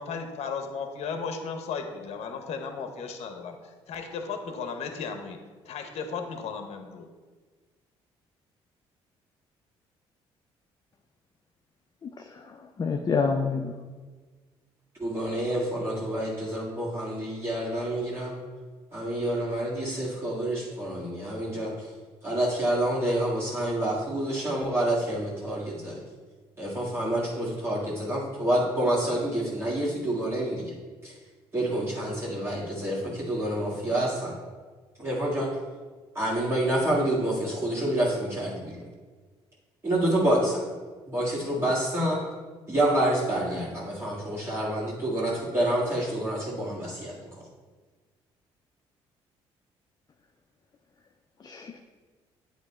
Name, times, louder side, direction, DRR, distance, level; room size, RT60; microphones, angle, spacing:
voice 1, 0.0-3.6 3.9-5.4 5.7-7.1, left 5 dB, 65° left, 5 dB, 0.8 m, -35 dB
voice 2, 12.0-13.7 51.4-51.8, left 5 dB, 35° left, 3 dB, 0.5 m, -28 dB
voice 3, 15.0-18.3 18.9-21.9 22.2-26.0 26.6-30.7 31.0-31.1 31.5-34.3 35.0-35.5 36.1-38.8 39.8-40.6 41.1-42.2 42.7-47.5, right 1 dB, 20° right, -8 dB, 1.8 m, -28 dB
8.1 x 2.9 x 4.3 m, 1.4 s
supercardioid pair, 65°, 12 cm